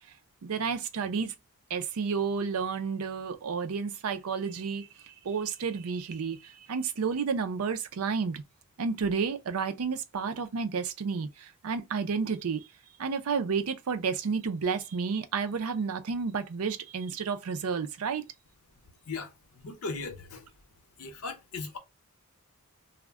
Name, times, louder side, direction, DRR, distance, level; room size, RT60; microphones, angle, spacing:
voice 1, 0.4-1.3 1.7-8.4 8.8-12.6 13.0-18.2, right 5 dB, 75° right, 0.5 m, -31 dB
voice 2, 19.0-20.5 21.0-21.8, left 4 dB, 80° left, 0.8 m, -38 dB
2.3 x 2.1 x 3.3 m
head